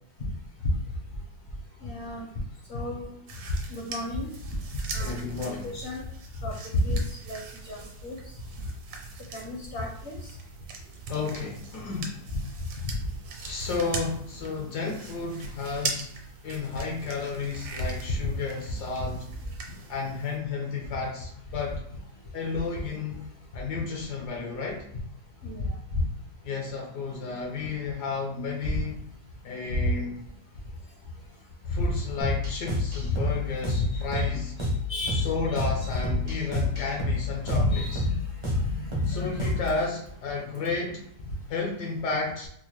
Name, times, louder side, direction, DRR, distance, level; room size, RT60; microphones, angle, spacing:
voice 1, 1.8-2.3 2.7-3.2 3.7-4.6 4.9-5.2 5.6-6.0 6.4-8.2 9.3-10.4 12.3-12.4 12.8-12.9 18.2-18.3 19.0-19.1 22.5-22.6 25.4-26.0 29.7-29.9 31.7-31.9 33.0-33.1 33.7-34.2 34.6-36.0 37.3-39.8 41.3-41.4, left 1 dB, 55° left, -2 dB, 0.8 m, -31 dB
sound 1, 3.3-20.4, right 4 dB, 70° right, 1.2 m, -41 dB
voice 2, 5.0-5.8 11.1-12.2 13.4-16.1 16.4-19.2 19.9-21.8 22.3-23.2 23.5-24.8 26.4-29.1 29.4-30.2 31.7-34.5 35.1-38.1 39.1-41.0 41.5-42.5, left 4 dB, 70° left, 0 dB, 1.1 m, -32 dB
sound 2, 32.2-39.8, left 2 dB, 45° right, 0.3 m, -29 dB
4.3 x 2.0 x 3.0 m, 0.69 s
omnidirectional pair, 1.9 m